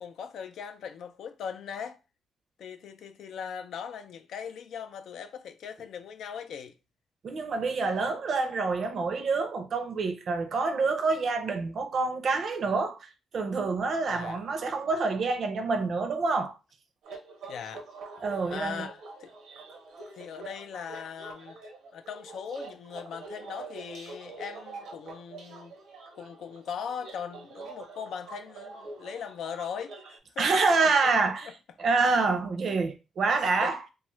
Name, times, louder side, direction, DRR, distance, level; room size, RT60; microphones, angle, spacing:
voice 1, 0.0-2.0 2.6-6.8 14.1-14.4 17.5-17.9 18.5-19.3 20.1-21.6 21.9-25.8 26.1-30.5 31.4-31.5 33.4-33.9, left 7 dB, 70° left, 0.4 m, -40 dB
voice 2, 7.2-16.5 18.2-18.9 30.4-31.5 31.8-33.8, right 4 dB, 50° right, 0.5 m, -27 dB
sound 1, 17.0-30.2, right 3 dB, 85° right, 0.8 m, -45 dB
3.1 x 2.3 x 3.1 m
cardioid pair, 125°, 0 cm